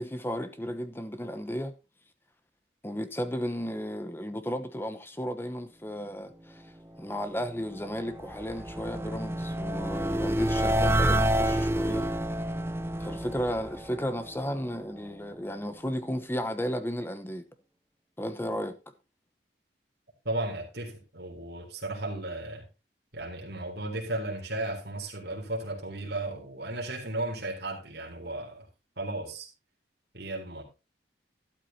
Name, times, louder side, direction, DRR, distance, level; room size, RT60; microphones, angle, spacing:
voice 1, 0.0-1.7 2.8-6.7 7.0-12.1 13.0-17.5 18.2-18.8, equal, 10° left, 1.0 m, -34 dB
sound 1, 7.5-14.7, right 1 dB, 15° right, 0.6 m, -29 dB
voice 2, 20.3-22.6 23.1-28.7 29.0-29.5 30.1-30.6, right 2 dB, 60° right, 3.7 m, -35 dB
12.5 x 11.5 x 2.8 m
head